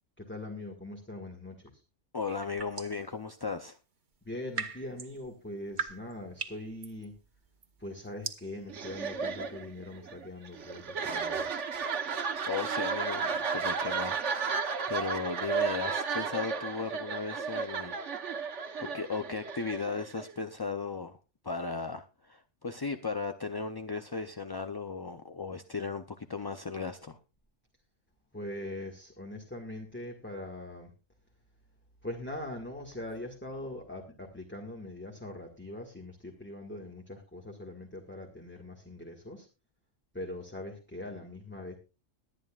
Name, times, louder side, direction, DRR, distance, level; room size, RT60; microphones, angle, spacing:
voice 1, 0.2-1.8 4.2-7.1 7.8-11.6 28.3-30.9 32.0-39.5 40.1-41.8, left 1 dB, 10° left, 1 dB, 1.7 m, -42 dB
voice 2, 2.1-3.8 12.5-18.0 18.8-21.2 21.4-27.2, left 4 dB, 30° left, 8 dB, 0.4 m, -36 dB
sound 1, 2.3-3.1 4.2-11.9, right 5 dB, 40° right, 1.2 m, -43 dB
sound 2, 8.7-20.4, right 5 dB, 70° right, 1.5 m, -33 dB
22.0 x 9.3 x 2.4 m, 0.30 s
omnidirectional pair, 1.3 m